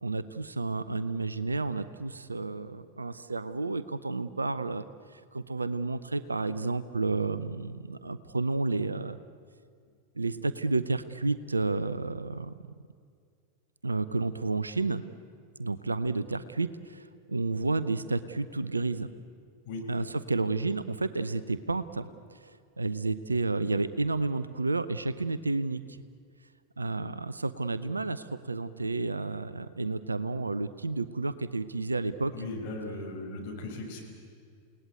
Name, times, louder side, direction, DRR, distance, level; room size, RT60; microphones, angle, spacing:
voice 1, 0.0-4.9 5.1-9.2 10.2-12.5 13.8-15.0 15.6-19.1 19.9-26.0 26.8-32.3, right 3 dB, 80° right, 14 dB, 0.8 m, -31 dB
voice 2, 32.3-34.0, left 2 dB, 45° left, 0 dB, 6.2 m, -37 dB
29.0 x 18.5 x 9.4 m, 2.2 s
figure-of-eight pair, 90°, 0 cm